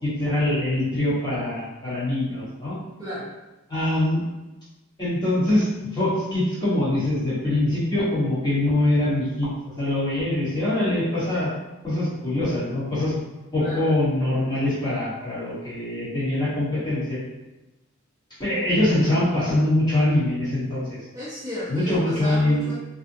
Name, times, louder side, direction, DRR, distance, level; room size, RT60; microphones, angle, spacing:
voice 1, 0.0-2.8 3.7-4.2 5.0-9.5 9.8-11.5 11.8-13.1 13.5-17.2 18.4-21.0 21.7-22.7, left 1 dB, 20° left, -11 dB, 1.1 m, -23 dB
voice 2, 3.0-3.3 13.6-13.9 21.1-22.7, left 1 dB, 15° right, -10 dB, 0.5 m, -33 dB
2.5 x 2.2 x 2.6 m, 1.0 s
head